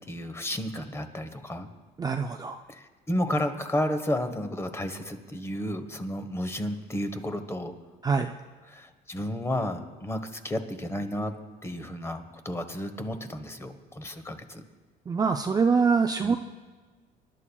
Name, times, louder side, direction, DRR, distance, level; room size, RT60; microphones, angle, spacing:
voice 1, 0.1-1.7 2.7-7.7 8.7-11.3 11.6-14.6 16.2-16.4, left 1 dB, 15° left, 8 dB, 1.0 m, -32 dB
voice 2, 2.0-2.6 8.0-8.3 15.1-16.4, right 5 dB, 20° right, 5 dB, 0.4 m, -24 dB
25.0 x 11.5 x 2.3 m, 1.4 s
cardioid pair, 110°, 17 cm